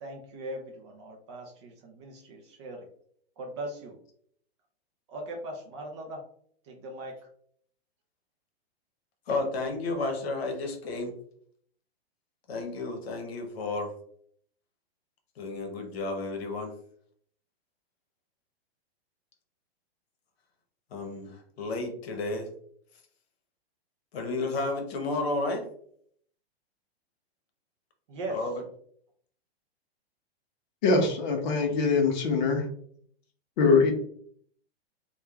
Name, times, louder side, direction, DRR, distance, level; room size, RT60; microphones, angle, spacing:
voice 1, 0.0-2.9 3.4-4.0 5.1-6.2 6.6-7.2 28.1-28.5, right 1 dB, 30° right, 0 dB, 0.4 m, -39 dB
voice 2, 9.3-11.1 12.5-13.9 15.4-16.7 20.9-22.5 24.1-25.6 28.2-28.7, left 2 dB, 75° left, 4 dB, 0.9 m, -32 dB
voice 3, 30.8-32.6 33.6-33.9, left 4 dB, 45° left, 3 dB, 0.7 m, -23 dB
2.9 x 2.2 x 2.3 m, 0.63 s
hypercardioid pair, 150°, 31 cm